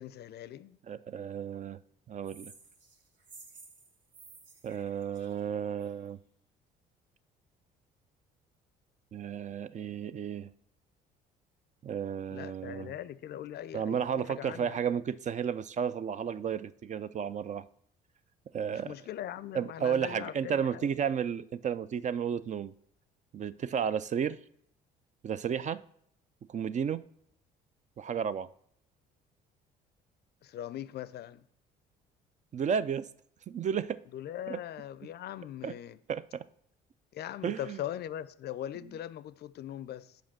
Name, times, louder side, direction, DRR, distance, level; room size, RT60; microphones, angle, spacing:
voice 1, 0.0-0.8 12.3-14.8 18.7-20.9 30.4-31.4 34.1-36.0 37.1-40.2, left 11 dB, 55° left, 0.5 m, -41 dB
voice 2, 0.9-1.8 2.1-2.5 4.6-6.2 9.1-10.5 11.8-12.9 13.7-17.6 18.5-18.9 19.5-22.7 23.3-24.4 25.2-25.8 26.5-27.0 28.0-28.5 32.5-33.1 33.5-34.0 34.5-34.6 35.6-35.7 36.1-36.5 37.4-37.8, right 7 dB, 35° right, 0.4 m, -33 dB
sound 1, 2.2-6.1, right 4 dB, 65° right, 1.3 m, -54 dB
5.1 x 5.0 x 6.0 m
hypercardioid pair, 60°, 20 cm